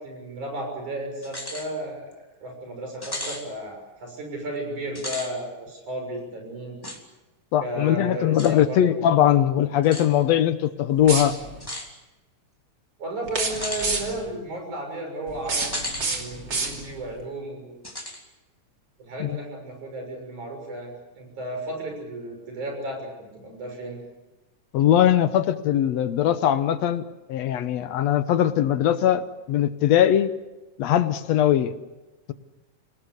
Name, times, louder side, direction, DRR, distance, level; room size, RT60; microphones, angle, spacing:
voice 1, 0.0-6.8 7.6-9.0 13.0-17.9 19.0-24.0, right 1 dB, 90° right, 2 dB, 8.0 m, -34 dB
sound 1, 1.2-1.7 2.1-2.2 3.0-3.4 4.9-5.3 6.8-7.0 8.4-8.5 9.8-10.1 11.6-11.9 13.5-13.9 15.6-16.1 16.5-16.6 17.8-18.2, left 1 dB, 10° left, 2.7 m, -34 dB
voice 2, 7.5-11.3 19.2-19.4 24.7-27.0 27.3-30.3 30.8-31.7, left 11 dB, 70° left, 12 dB, 2.0 m, -20 dB
sound 2, 11.0-11.7 13.2-14.3 15.3-17.1, right 3 dB, 40° right, 3.4 m, -29 dB
26.5 x 18.5 x 8.3 m, 1.1 s
omnidirectional pair, 3.3 m